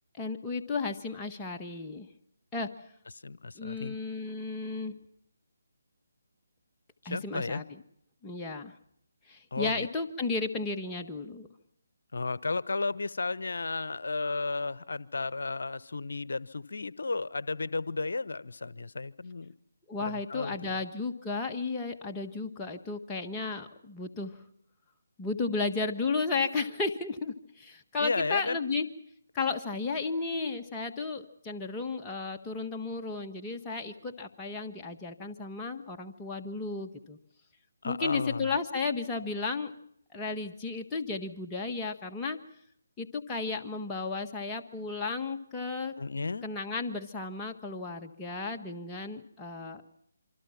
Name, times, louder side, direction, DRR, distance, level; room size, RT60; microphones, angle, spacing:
voice 1, 0.2-2.1 2.5-2.7 3.5-5.0 7.0-7.8 8.2-8.7 9.3-11.5 19.9-24.4 25.2-28.9 29.3-37.2 37.8-39.7 40.1-42.4 43.0-45.9 46.4-49.8, left 4 dB, 15° left, 1 dB, 1.6 m, -34 dB
voice 2, 3.2-4.0 7.0-7.6 9.5-9.9 12.1-19.5 20.0-20.8 28.0-28.6 37.8-38.5 46.0-46.4, left 3 dB, 65° left, 19 dB, 0.9 m, -33 dB
27.0 x 25.0 x 5.9 m, 0.69 s
figure-of-eight pair, 150°, 0 cm